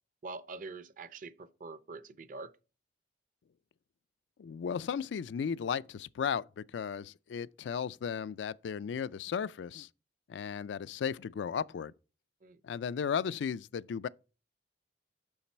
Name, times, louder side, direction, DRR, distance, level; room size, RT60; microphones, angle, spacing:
voice 1, 0.2-2.5 12.4-12.6, right 3 dB, 50° right, 0.5 m, -45 dB
voice 2, 4.4-9.9 10.3-11.9 12.6-14.1, left 7 dB, 90° left, 0.3 m, -35 dB
7.1 x 5.8 x 4.4 m
head